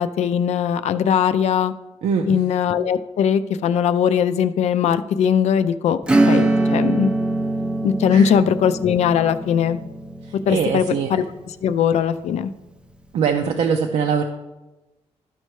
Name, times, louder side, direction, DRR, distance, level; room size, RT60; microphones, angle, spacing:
voice 1, 0.0-1.7 2.3-6.0 6.2-7.1 7.8-9.8 10.5-10.9 11.1-11.2 11.6-12.5, left 8 dB, 70° left, 12 dB, 0.4 m, -20 dB
voice 2, 2.0-2.4 8.1-8.3 10.2-11.2 13.1-14.2, right 6 dB, 65° right, 4 dB, 0.5 m, -22 dB
Acoustic guitar / Strum, 6.0-12.3, right 2 dB, 10° right, 0.5 m, -23 dB
13.0 x 5.4 x 3.1 m, 1.1 s
cardioid pair, 150°, 12 cm